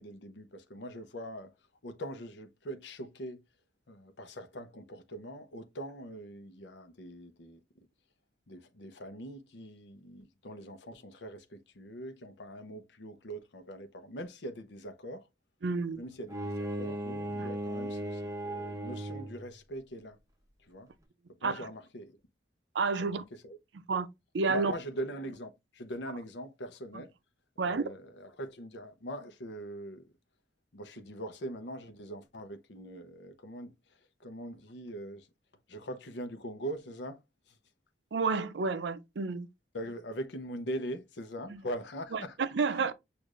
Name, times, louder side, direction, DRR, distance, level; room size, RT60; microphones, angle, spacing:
voice 1, 0.0-1.5 1.8-3.4 3.9-7.9 8.5-15.3 16.0-20.2 20.6-20.9 21.4-22.2 23.0-23.6 24.5-27.1 27.6-30.1 30.7-33.7 34.2-35.3 35.7-37.2 37.5-37.6 39.7-42.4 42.7-42.9, equal, 75° left, 0.7 m, -42 dB
voice 2, 15.6-16.0 17.4-17.5 21.4-21.7 22.7-23.2 23.9-24.1 24.3-24.7 26.9-27.0 27.6-27.8 38.1-39.5 41.5-41.6 42.1-42.9, right 4 dB, 75° right, 0.5 m, -30 dB
Bowed string instrument, 16.3-19.5, right 1 dB, 20° right, 0.7 m, -36 dB
6.4 x 2.5 x 2.5 m
head